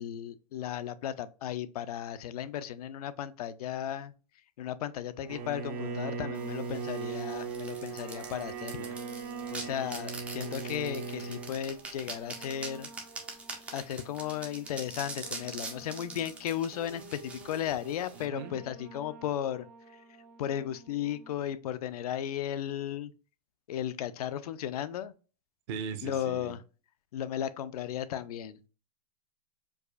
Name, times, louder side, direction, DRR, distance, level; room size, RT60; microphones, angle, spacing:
voice 1, 0.0-4.1 4.6-8.9 9.5-12.9 13.7-19.7 19.9-20.0 20.4-23.1 23.7-25.1 26.0-26.6 27.1-28.6, left 10 dB, 70° left, 0.4 m, -35 dB
sound 1, 5.2-21.5, right 3 dB, 90° right, 1.0 m, -52 dB
Bowed string instrument, 5.3-11.6, right 5 dB, 65° right, 1.0 m, -38 dB
sound 2, 6.4-18.2, right 3 dB, 5° right, 0.4 m, -44 dB
voice 2, 18.1-18.6 25.7-26.5, right 6 dB, 40° right, 0.7 m, -39 dB
4.7 x 2.4 x 2.3 m
supercardioid pair, 160°, 20 cm